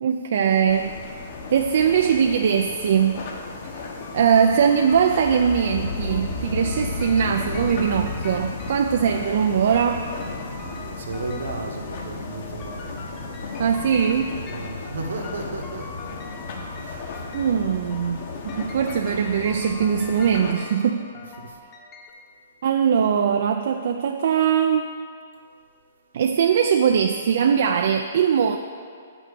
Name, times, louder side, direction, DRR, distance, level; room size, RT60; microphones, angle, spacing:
voice 1, 0.0-0.9 1.5-3.2 3.6-10.1 13.6-14.4 17.3-18.2 18.4-21.1 22.6-25.0 26.1-28.6, right 7 dB, 60° right, 5 dB, 0.5 m, -21 dB
sound 1, 0.7-20.5, left 3 dB, 50° left, 1.5 m, -34 dB
sound 2, 4.0-22.1, left 3 dB, 25° left, 1.1 m, -43 dB
voice 2, 10.5-13.0 14.4-16.0 16.8-17.4 21.4-21.6, right 2 dB, 80° right, 1 dB, 1.5 m, -34 dB
8.1 x 6.0 x 6.8 m, 2.2 s
hypercardioid pair, 150°, 0 cm